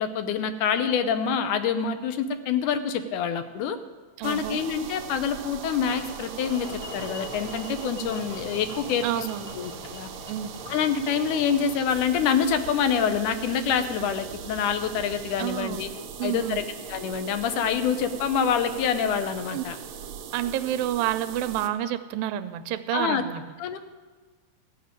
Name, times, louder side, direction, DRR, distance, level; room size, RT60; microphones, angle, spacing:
voice 1, 0.0-3.8 4.2-6.7 6.9-9.3 9.6-10.1 10.7-15.9 16.2-19.8 22.9-23.2 23.6-23.8, left 7 dB, 75° left, 10 dB, 2.1 m, -26 dB
sound 1, 4.2-21.7, right 9 dB, 70° right, 1.8 m, -41 dB
voice 2, 4.2-4.6 9.0-9.5 10.3-10.5 15.4-15.8 16.2-16.6 19.5-19.6 20.3-23.4, right 12 dB, 85° right, 11 dB, 2.4 m, -29 dB
sound 2, 5.8-21.9, left 1 dB, 55° left, 0.6 m, -44 dB
14.5 x 6.7 x 9.5 m, 1.4 s
omnidirectional pair, 4.0 m